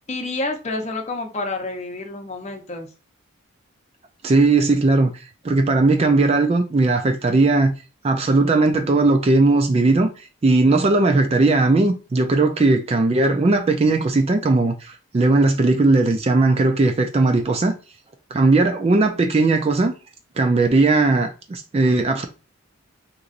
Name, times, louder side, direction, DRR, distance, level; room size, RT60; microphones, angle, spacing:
voice 1, 0.1-2.9, left 2 dB, 30° left, 0.7 m, -29 dB
voice 2, 4.2-5.1 5.4-7.7 8.0-10.1 10.4-17.7 18.3-19.9 20.4-22.3, right 3 dB, 30° right, 0.3 m, -18 dB
3.9 x 3.0 x 2.4 m
head